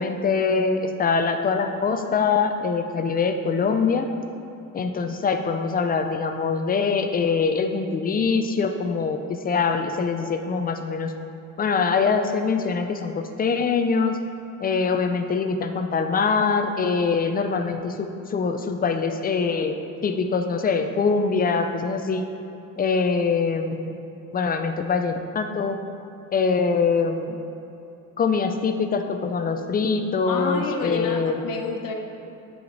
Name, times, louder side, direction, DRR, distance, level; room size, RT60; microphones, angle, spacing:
voice 1, 0.0-4.1 4.7-11.1 11.6-14.2 14.6-19.8 20.0-22.3 22.8-23.9 24.3-25.8 26.3-27.4 28.2-31.4, left 5 dB, 25° left, 6 dB, 0.4 m, -23 dB
voice 2, 30.3-31.9, left 4 dB, 70° left, 3 dB, 1.0 m, -29 dB
9.8 x 4.9 x 4.0 m, 2.9 s
cardioid pair, 155°, 34 cm